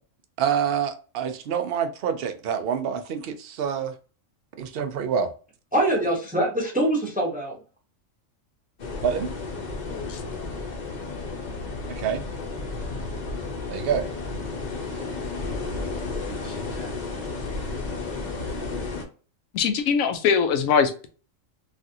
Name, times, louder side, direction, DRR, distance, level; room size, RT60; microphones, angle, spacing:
voice 1, 0.4-3.9 4.6-5.3 9.0-9.3 11.9-12.2 13.7-14.1, right 7 dB, 60° right, 0.6 m, -26 dB
voice 2, 5.7-7.6 16.2-16.9, right 1 dB, 10° right, 0.7 m, -25 dB
sound 1, 8.8-19.0, left 3 dB, 40° left, 0.7 m, -32 dB
voice 3, 9.9-10.2 19.5-21.1, left 6 dB, 85° left, 1.0 m, -22 dB
3.3 x 2.4 x 2.6 m
omnidirectional pair, 1.4 m